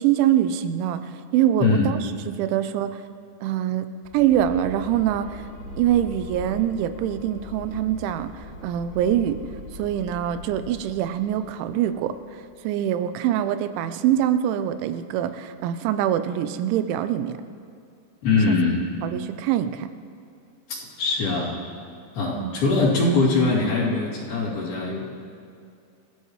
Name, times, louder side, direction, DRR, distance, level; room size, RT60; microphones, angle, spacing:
voice 1, 0.0-2.0 2.4-3.0 3.4-3.9 4.1-5.4 5.8-9.4 9.7-12.1 12.6-17.4 18.5-18.6 19.0-19.9 22.3-22.5, right 11 dB, 90° right, 10 dB, 3.1 m, -24 dB
voice 2, 1.6-1.9 18.2-18.8 20.7-21.6 22.1-25.3, left 3 dB, 55° left, -6 dB, 4.5 m, -22 dB
sound 1, 4.0-12.9, left 2 dB, 75° left, 3.1 m, -41 dB
27.5 x 15.0 x 3.2 m, 2.4 s
omnidirectional pair, 5.3 m